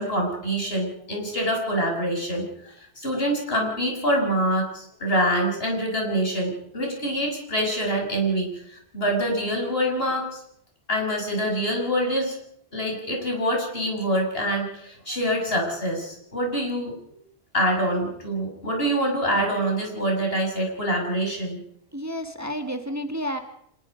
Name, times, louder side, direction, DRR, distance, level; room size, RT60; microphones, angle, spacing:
voice 1, 0.0-10.4 10.9-12.4 12.7-16.9 17.5-21.6, equal, 65° left, 1 dB, 6.6 m, -25 dB
voice 2, 21.9-23.4, equal, 15° right, 6 dB, 1.7 m, -30 dB
25.5 x 21.5 x 5.2 m, 0.72 s
omnidirectional pair, 1.1 m